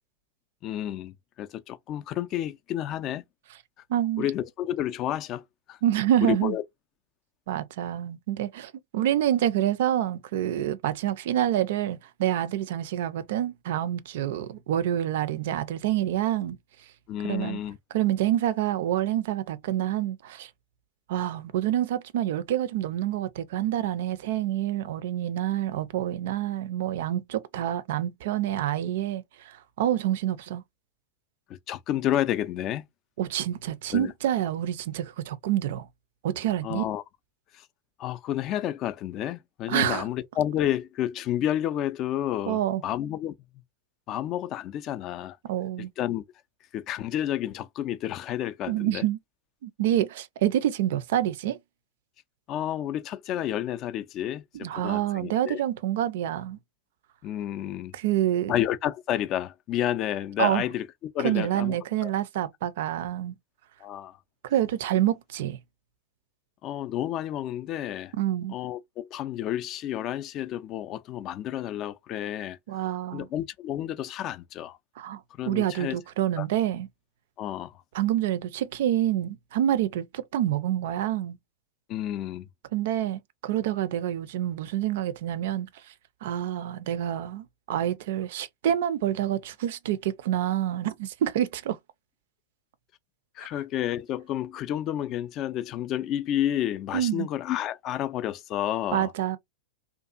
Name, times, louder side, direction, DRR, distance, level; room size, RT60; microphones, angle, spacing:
voice 1, 0.6-3.2 4.2-5.4 5.7-5.8 6.2-6.6 17.1-17.8 31.5-32.8 33.9-34.1 36.6-37.0 37.5-37.7 38.0-43.3 44.1-45.4 45.8-46.2 46.7-49.0 52.5-55.6 57.2-57.9 58.5-60.8 61.1-61.8 62.0-62.1 63.8-64.2 66.6-68.1 68.5-72.6 73.1-74.8 75.4-76.0 76.4-76.5 77.4-77.8 81.9-82.5 93.4-99.1, left 12 dB, 40° left, 0.3 m, -30 dB
voice 2, 3.9-4.3 5.8-6.5 7.5-16.6 17.2-17.6 17.9-20.5 21.1-30.6 33.2-35.9 36.2-36.8 39.7-40.1 42.5-42.8 45.4-45.9 48.7-49.2 49.6-51.6 54.5-56.6 57.9-58.5 60.4-60.6 61.2-63.4 64.4-65.6 68.1-68.6 72.7-73.3 75.0-75.2 75.5-76.9 77.9-81.4 82.7-85.7 86.2-91.8 96.9-97.3 98.9-99.4, right 12 dB, 60° right, 0.4 m, -27 dB
2.6 x 2.3 x 2.4 m
figure-of-eight pair, 95°, 0 cm